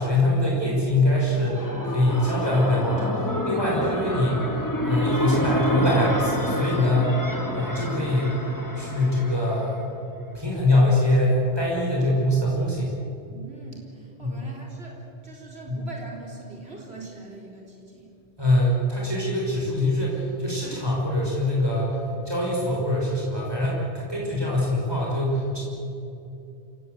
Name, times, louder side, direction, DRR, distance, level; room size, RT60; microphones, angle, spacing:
voice 1, 0.0-4.4 4.8-7.2 7.5-8.3 8.8-9.8 10.3-12.9 14.2-14.4 15.7-15.9 18.4-22.0 22.2-25.6, left 1 dB, 20° right, -4 dB, 5.9 m, -23 dB
sound 1, 1.2-9.9, equal, 15° left, 2.4 m, -29 dB
voice 2, 13.3-18.1, right 3 dB, 65° right, -1 dB, 4.4 m, -42 dB
28.0 x 18.5 x 8.1 m, 2.7 s
omnidirectional pair, 1.2 m